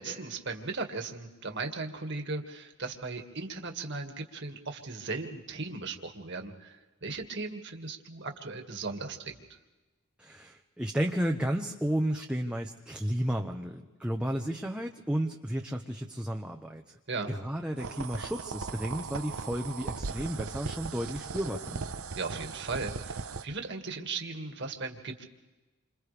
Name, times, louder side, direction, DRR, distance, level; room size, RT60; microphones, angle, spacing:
voice 1, 0.0-9.6 17.1-17.3 22.2-25.2, right 3 dB, 55° right, 4 dB, 2.0 m, -37 dB
voice 2, 10.2-16.9 17.3-21.9, equal, 5° right, 1 dB, 0.9 m, -32 dB
sound 1, 17.8-23.4, right 4 dB, 85° right, 0.9 m, -38 dB
28.5 x 26.5 x 3.4 m, 1.2 s
head